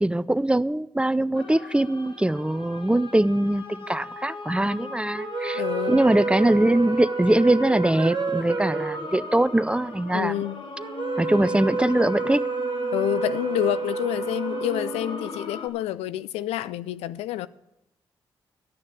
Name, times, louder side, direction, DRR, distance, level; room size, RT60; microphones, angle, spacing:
voice 1, 0.0-5.6 5.9-10.3 11.2-12.4, right 1 dB, 10° right, 0.5 m, -22 dB
sound 1, 1.3-15.7, left 3 dB, 50° left, 1.7 m, -39 dB
sound 2, 5.1-15.6, right 4 dB, 45° right, 0.8 m, -30 dB
voice 2, 5.5-6.0 10.1-10.6 12.9-17.5, left 13 dB, 85° left, 0.4 m, -28 dB
11.5 x 6.4 x 8.5 m
supercardioid pair, 45°, 10 cm